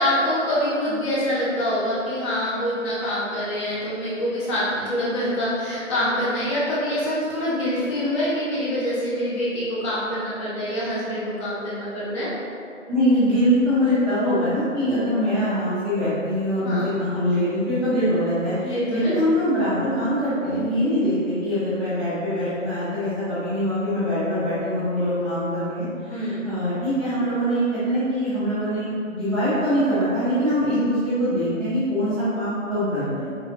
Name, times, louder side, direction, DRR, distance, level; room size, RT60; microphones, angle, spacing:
voice 1, 0.0-12.3 16.6-16.9 18.6-19.2 26.1-26.5, equal, 25° left, -8 dB, 1.0 m, -25 dB
voice 2, 12.9-33.3, equal, ahead, -18 dB, 0.7 m, -23 dB
4.1 x 3.7 x 2.7 m, 2.4 s
figure-of-eight pair, 140°, 39 cm